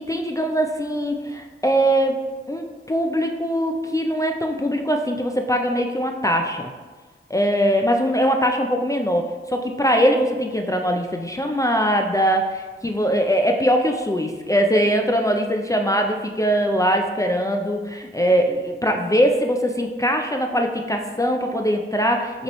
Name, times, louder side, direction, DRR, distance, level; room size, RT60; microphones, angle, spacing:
voice 1, 0.0-6.7 7.3-22.4, equal, 15° left, 3 dB, 0.4 m, -21 dB
5.2 x 3.0 x 3.0 m, 1.3 s
wide cardioid pair, 60°, 21 cm